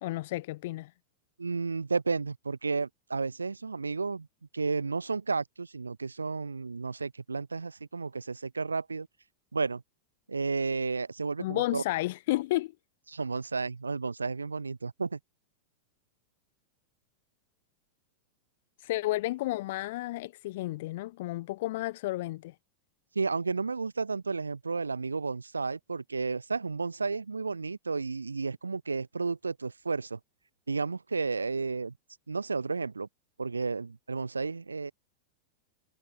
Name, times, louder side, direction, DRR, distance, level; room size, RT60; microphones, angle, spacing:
voice 1, 0.0-0.9 11.4-12.7 18.8-22.5, left 18 dB, 55° left, 1.0 m, -32 dB
voice 2, 1.4-4.3 4.5-9.1 9.5-9.8 10.3-11.8 13.1-15.2 23.2-30.2 30.7-31.9 32.3-33.1 33.4-34.9, right 4 dB, 80° right, 0.6 m, -32 dB
figure-of-eight pair, 90°, 0 cm